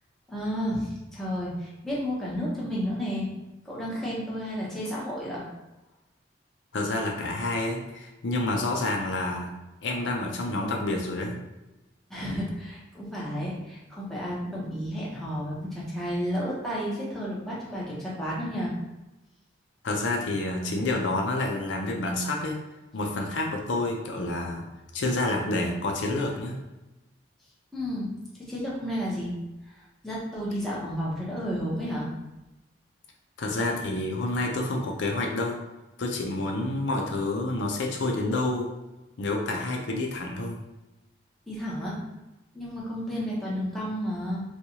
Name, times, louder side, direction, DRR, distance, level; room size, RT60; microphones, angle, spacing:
voice 1, 0.3-3.3 3.6-5.5 12.1-18.7 27.7-28.1 28.5-29.3 29.7-32.1 41.5-42.0 42.5-44.4, equal, ahead, -7 dB, 0.9 m, -32 dB
voice 2, 6.7-9.5 9.8-11.4 19.8-22.6 22.9-24.7 24.9-26.6 33.4-35.6 36.0-38.7 39.2-40.6, left 2 dB, 75° left, 1 dB, 0.5 m, -28 dB
4.2 x 2.3 x 2.8 m, 1.0 s
head